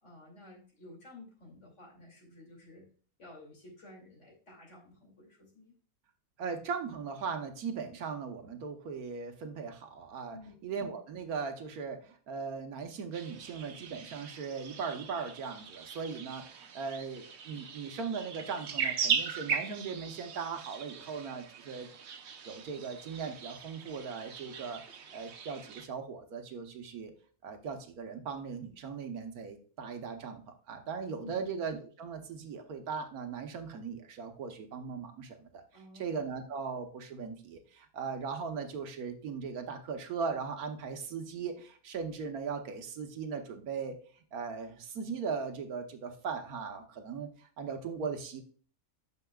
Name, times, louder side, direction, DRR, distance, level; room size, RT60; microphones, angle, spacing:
voice 1, 0.0-2.9 3.2-5.8 10.3-10.7 31.2-31.4 35.7-36.1, left 2 dB, 50° left, -2 dB, 2.8 m, -52 dB
voice 2, 6.4-10.4 10.6-21.9 22.4-24.8 25.1-27.1 27.4-35.6 35.9-44.0 44.3-48.4, right 5 dB, 75° right, 6 dB, 1.4 m, -38 dB
sound 1, 13.1-25.9, right 6 dB, 55° right, 0.9 m, -39 dB
9.6 x 6.4 x 2.3 m, 0.43 s
omnidirectional pair, 1.6 m